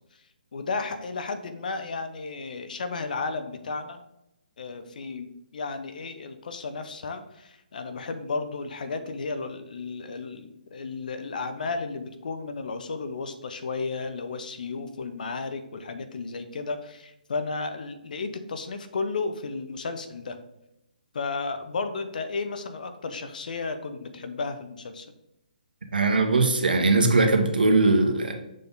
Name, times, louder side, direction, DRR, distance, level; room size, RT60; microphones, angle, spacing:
voice 1, 0.5-4.0 4.6-20.4 21.1-25.1, left 4 dB, 65° left, 8 dB, 0.8 m, -33 dB
voice 2, 25.9-28.3, right 3 dB, 85° right, 4 dB, 1.2 m, -20 dB
6.6 x 3.6 x 3.9 m, 0.87 s
hypercardioid pair, 150°, 5 cm